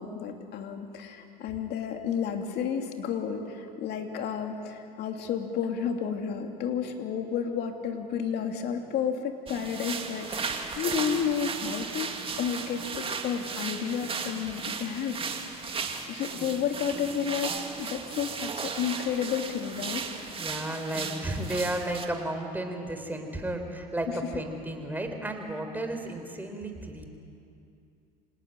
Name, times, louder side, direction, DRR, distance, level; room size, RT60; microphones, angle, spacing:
voice 1, 0.0-12.1 12.4-15.4 16.1-20.0, left 7 dB, 55° left, 4 dB, 3.0 m, -31 dB
sound 1, 9.5-22.0, right 5 dB, 25° right, 2.4 m, -36 dB
voice 2, 20.4-27.1, right 1 dB, 10° right, 5 dB, 3.9 m, -33 dB
26.5 x 19.0 x 8.9 m, 2.5 s
hypercardioid pair, 90°, 20 cm